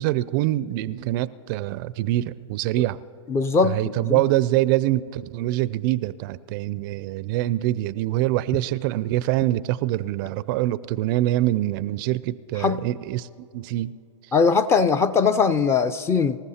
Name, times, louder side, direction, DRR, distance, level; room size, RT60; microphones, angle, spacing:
voice 1, 0.0-3.0 3.6-13.9, right 15 dB, 45° right, 0.4 m, -24 dB
voice 2, 3.3-4.2 12.6-12.9 14.3-16.4, left 5 dB, 15° left, 0.5 m, -21 dB
26.0 x 14.5 x 2.8 m
hypercardioid pair, 115°, 16 cm